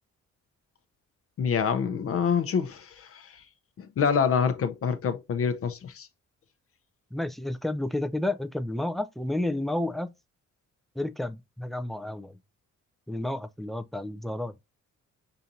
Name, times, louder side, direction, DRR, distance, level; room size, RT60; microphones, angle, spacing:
voice 1, 1.4-3.4 3.8-6.1, left 6 dB, 50° left, 0.6 m, -26 dB
voice 2, 7.1-10.1 11.0-12.4 13.1-14.5, left 1 dB, ahead, 0.3 m, -31 dB
5.6 x 2.6 x 2.7 m
cardioid pair, 90°, 30 cm